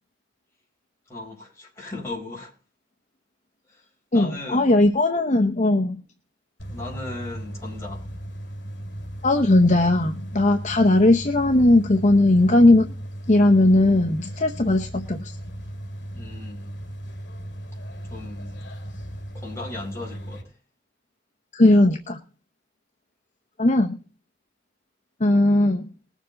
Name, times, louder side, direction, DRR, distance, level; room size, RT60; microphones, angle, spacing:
voice 1, 1.1-2.5 3.7-3.8 4.1-4.8 6.7-8.1 16.1-16.7 18.1-18.6 19.3-20.5, left 2 dB, 15° left, 4.9 m, -37 dB
voice 2, 4.1-6.0 9.2-12.9 13.3-15.4 21.5-22.2 23.6-24.0 25.2-25.9, left 2 dB, 40° left, 0.8 m, -18 dB
sound 1, 6.6-20.4, equal, 65° left, 3.2 m, -36 dB
20.0 x 7.3 x 4.0 m
head